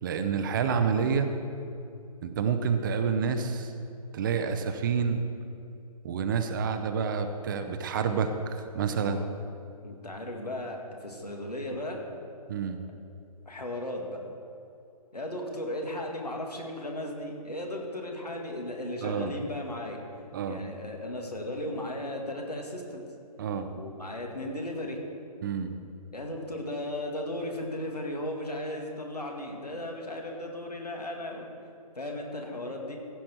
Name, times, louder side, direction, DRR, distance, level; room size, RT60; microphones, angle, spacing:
voice 1, 0.0-1.4 2.2-3.7 4.1-5.2 6.0-9.2 12.5-12.8 19.0-19.4 20.3-20.6 23.4-23.7 25.4-25.7, right 6 dB, 30° right, 8 dB, 0.6 m, -28 dB
voice 2, 9.0-9.3 9.8-12.0 13.5-14.2 15.1-20.0 20.5-23.0 23.7-25.0 26.1-31.5 32.0-33.0, left 1 dB, 85° left, 1 dB, 2.1 m, -36 dB
15.5 x 7.2 x 4.5 m, 2.6 s
figure-of-eight pair, 135°, 20 cm